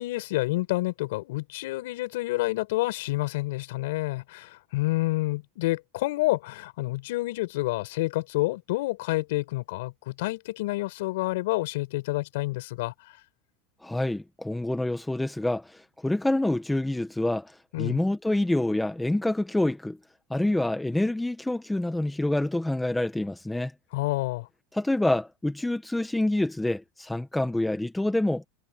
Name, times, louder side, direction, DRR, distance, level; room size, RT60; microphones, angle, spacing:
voice 1, 0.0-12.9 17.7-18.0 23.9-24.5, left 19 dB, 70° left, 5.7 m, -28 dB
voice 2, 13.8-17.5 17.8-20.0 20.3-23.7 24.7-28.4, left 1 dB, 5° left, 1.4 m, -27 dB
supercardioid pair, 165°, 0 cm